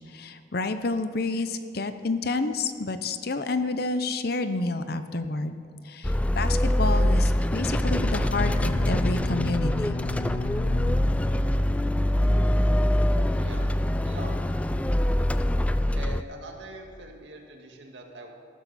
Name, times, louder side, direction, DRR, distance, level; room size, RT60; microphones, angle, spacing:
voice 1, 0.1-5.6 5.8-10.0, left 3 dB, 55° left, 10 dB, 0.8 m, -29 dB
sound 1, 6.0-16.2, left 1 dB, 5° left, 0.3 m, -24 dB
Bowed string instrument, 7.8-12.1, left 3 dB, 85° left, 0.4 m, -35 dB
voice 2, 13.4-13.7 14.0-14.4 15.9-18.3, right 2 dB, 75° right, 2 dB, 2.0 m, -42 dB
15.0 x 12.5 x 4.3 m, 2.4 s
head